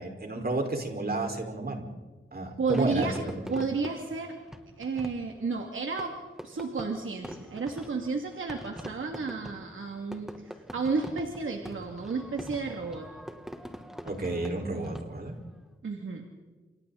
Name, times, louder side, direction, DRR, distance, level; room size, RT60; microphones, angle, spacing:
voice 1, 0.0-1.9 2.3-3.1 3.5-3.6 14.0-15.4, right 2 dB, 50° right, 3 dB, 5.2 m, -31 dB
voice 2, 2.6-3.2 3.5-4.4 4.8-6.1 6.4-13.1 15.8-16.3, right 4 dB, 75° right, 2 dB, 2.7 m, -32 dB
Fireworks, 2.7-15.4, equal, ahead, 2.8 m, -44 dB
29.5 x 29.0 x 4.3 m, 1.3 s
cardioid pair, 55°, 21 cm